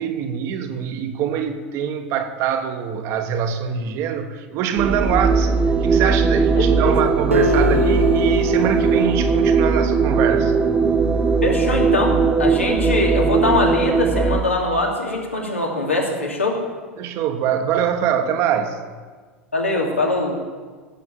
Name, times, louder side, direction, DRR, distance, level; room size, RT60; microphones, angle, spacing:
voice 1, 0.0-5.5 5.8-10.5 17.0-18.8, right 8 dB, 45° right, 7 dB, 1.4 m, -24 dB
sound 1, 4.8-14.4, right 4 dB, 15° right, 1.0 m, -19 dB
voice 2, 6.6-6.9 11.4-16.6 19.5-20.4, left 2 dB, 80° left, -1 dB, 2.6 m, -22 dB
Acoustic guitar, 7.3-10.9, left 3 dB, 90° right, 0.6 m, -26 dB
17.5 x 7.2 x 7.2 m, 1.4 s
figure-of-eight pair, 85°, 7 cm